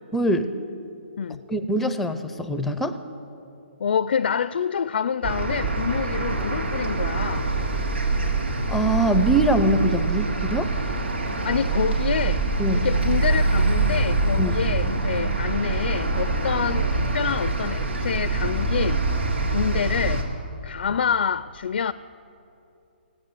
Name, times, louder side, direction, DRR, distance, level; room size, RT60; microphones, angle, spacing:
voice 1, 0.1-0.5 1.5-3.0 8.7-10.7 12.6-12.9 14.4-14.6, right 1 dB, 5° left, 0.5 m, -23 dB
voice 2, 3.8-7.5 11.4-12.4 12.7-19.1 19.5-20.2 20.6-21.9, left 7 dB, 65° left, 0.4 m, -27 dB
sound 1, 5.2-20.2, right 3 dB, 85° right, 3.0 m, -24 dB
17.5 x 8.9 x 9.3 m
hypercardioid pair, 155°, 6 cm